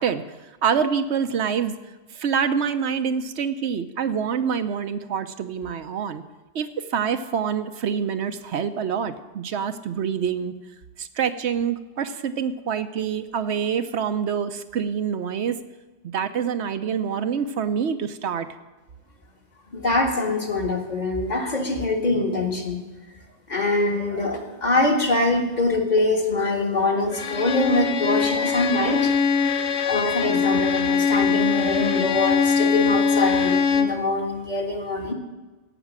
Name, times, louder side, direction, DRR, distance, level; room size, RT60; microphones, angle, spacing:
voice 1, 0.0-1.8 2.1-6.2 6.5-10.5 11.0-15.6 16.1-18.5, right 7 dB, 75° right, 10 dB, 1.0 m, -26 dB
voice 2, 19.7-22.8 23.5-29.1 29.8-35.1, left 2 dB, 40° left, 1 dB, 1.8 m, -23 dB
Bowed string instrument, 27.1-34.0, left 5 dB, 85° left, 1.1 m, -22 dB
16.5 x 6.1 x 7.4 m, 1.2 s
omnidirectional pair, 1.1 m